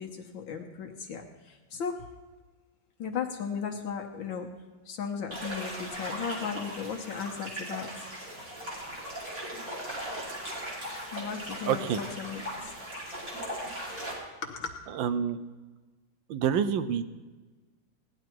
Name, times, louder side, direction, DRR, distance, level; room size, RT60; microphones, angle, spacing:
voice 1, 0.0-1.9 3.0-4.5 4.9-8.1 11.1-12.4 14.4-14.7, left 6 dB, 70° left, 2 dB, 1.8 m, -36 dB
sound 1, 5.3-14.1, equal, 40° right, 4.4 m, -38 dB
voice 2, 11.7-12.0 15.0-15.4 16.3-17.0, right 8 dB, 75° right, 11 dB, 1.4 m, -27 dB
17.5 x 10.5 x 4.5 m, 1.3 s
omnidirectional pair, 2.2 m